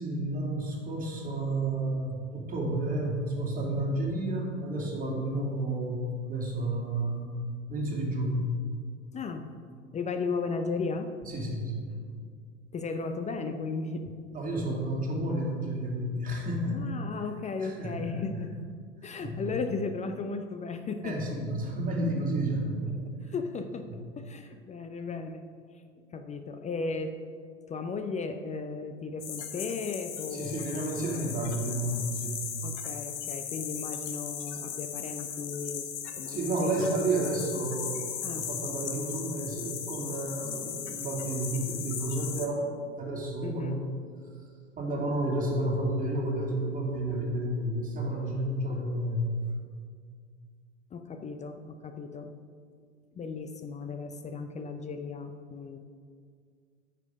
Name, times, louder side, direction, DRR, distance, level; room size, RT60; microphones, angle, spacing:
voice 1, 0.0-7.4 7.7-8.5 11.3-11.9 14.3-16.9 17.6-18.2 19.0-19.5 21.0-23.0 23.9-24.0 30.3-32.4 36.3-42.7 43.0-43.9 44.8-49.3, right 1 dB, 20° right, -2 dB, 2.6 m, -31 dB
voice 2, 9.1-9.6 9.9-11.2 12.7-14.2 16.7-18.7 19.0-21.2 23.3-25.5 26.1-27.2 27.7-30.8 32.6-36.9 38.2-38.5 40.7-40.8 43.4-43.8 50.9-52.3 53.1-55.8, left 4 dB, 20° left, 7 dB, 0.5 m, -35 dB
sound 1, 29.2-42.5, left 8 dB, 65° left, 1.2 m, -37 dB
9.6 x 6.7 x 5.2 m, 2.1 s
figure-of-eight pair, 80°, 37 cm